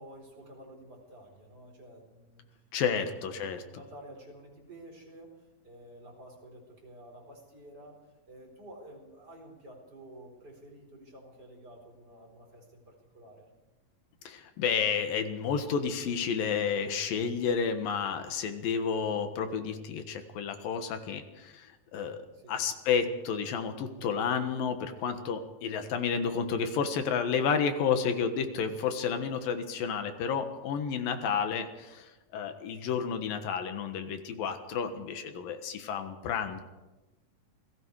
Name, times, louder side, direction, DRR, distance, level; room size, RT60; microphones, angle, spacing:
voice 1, 0.0-2.5 2.8-8.0 8.3-13.5 22.3-22.6 30.6-30.8 35.2-35.4, right 1 dB, 30° right, 1 dB, 4.9 m, -51 dB
voice 2, 2.7-3.6 14.2-22.2 22.5-36.6, left 6 dB, 85° left, 8 dB, 3.2 m, -31 dB
28.5 x 20.0 x 4.8 m, 1.1 s
omnidirectional pair, 3.9 m